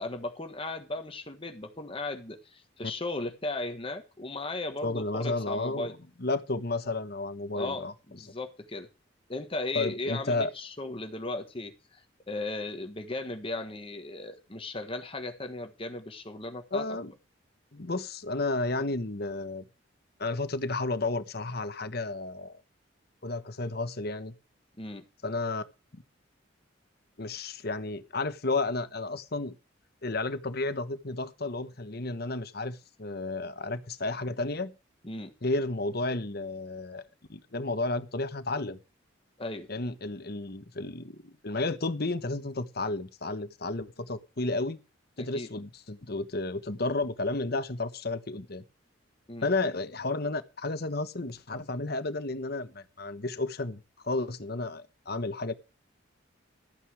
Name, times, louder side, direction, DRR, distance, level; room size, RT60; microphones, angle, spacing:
voice 1, 0.0-5.9 7.5-8.9 9.3-12.0 12.3-17.0 24.8-25.0 35.0-35.3 39.4-39.7 45.2-45.5 49.3-49.5, left 2 dB, 30° left, 1.4 m, -36 dB
voice 2, 4.8-5.9 6.2-7.9 9.7-10.5 16.7-17.1 17.7-19.6 20.2-22.6 23.2-24.3 25.2-25.6 25.9-26.0 27.2-29.6 30.0-34.7 35.4-37.0 37.3-38.8 39.7-44.8 45.2-48.6 49.4-55.5, left 2 dB, 55° left, 1.2 m, -32 dB
13.5 x 9.3 x 4.9 m
head